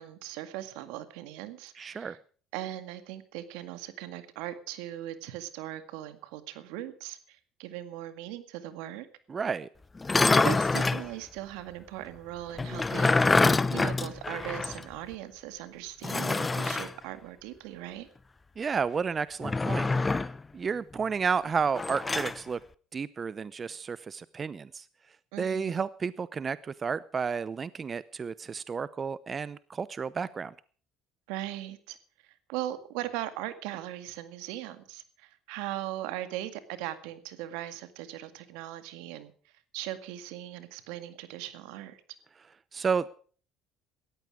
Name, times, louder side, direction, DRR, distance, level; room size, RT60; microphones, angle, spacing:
voice 1, 0.0-2.2 2.5-9.1 10.3-13.2 13.7-18.1 25.3-25.9 31.3-32.0 32.3-39.3 39.7-42.0, right 13 dB, 80° right, 11 dB, 1.9 m, -39 dB
voice 2, 1.8-2.2 9.3-9.7 18.6-19.9 20.2-22.6 22.9-24.8 25.4-30.5 42.7-43.1, right 5 dB, 35° right, 18 dB, 0.7 m, -31 dB
sound 1, 10.0-11.1 12.6-14.8 15.1-15.2 16.0-16.9 19.4-20.4 21.7-22.4, left 3 dB, 20° left, 0.8 m, -26 dB
18.0 x 14.0 x 4.8 m, 0.43 s
supercardioid pair, 85°, 0 cm